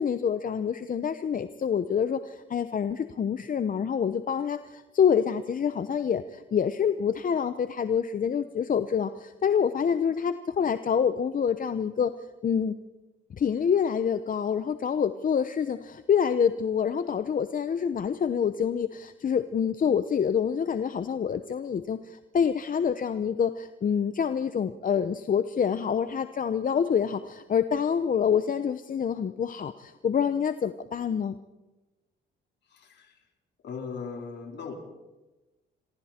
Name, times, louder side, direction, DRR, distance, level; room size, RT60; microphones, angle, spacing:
voice 1, 0.0-12.1 12.4-12.7 13.4-22.0 22.3-31.4, left 7 dB, 45° left, 11 dB, 0.9 m, -26 dB
voice 2, 32.6-33.2 33.6-34.7, left 5 dB, 60° left, 2 dB, 4.4 m, -39 dB
27.5 x 25.0 x 4.4 m, 1.1 s
cardioid pair, 90°, 20 cm